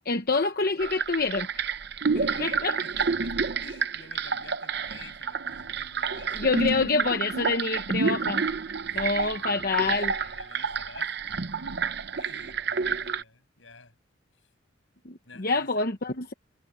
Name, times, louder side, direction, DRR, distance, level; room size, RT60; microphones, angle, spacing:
voice 1, 0.0-1.6 2.1-2.7 6.3-8.4 8.9-10.1 15.0-16.3, left 3 dB, 45° left, 1.0 m, -27 dB
sound 1, 0.8-13.2, right 5 dB, 55° right, 0.8 m, -29 dB
voice 2, 2.2-6.7 8.8-11.4 12.1-14.0 15.2-15.8, left 4 dB, 70° left, 7.8 m, -50 dB
head